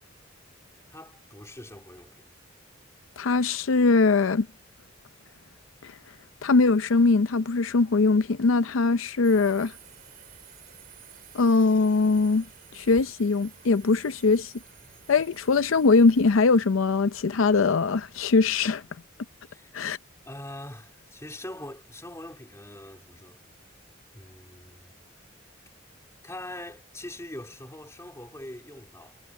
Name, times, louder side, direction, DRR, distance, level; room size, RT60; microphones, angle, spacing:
voice 1, 0.9-2.2 19.5-19.7 20.2-23.4 24.1-25.0 26.2-29.2, left 1 dB, 15° left, 3.1 m, -42 dB
voice 2, 3.2-4.5 5.8-5.9 6.4-9.7 11.3-12.4 12.7-14.5 15.1-18.8 19.7-20.0, left 4 dB, 75° left, 0.5 m, -21 dB
Subway metro underground, 9.2-18.7, right 7 dB, 50° right, 6.1 m, -52 dB
head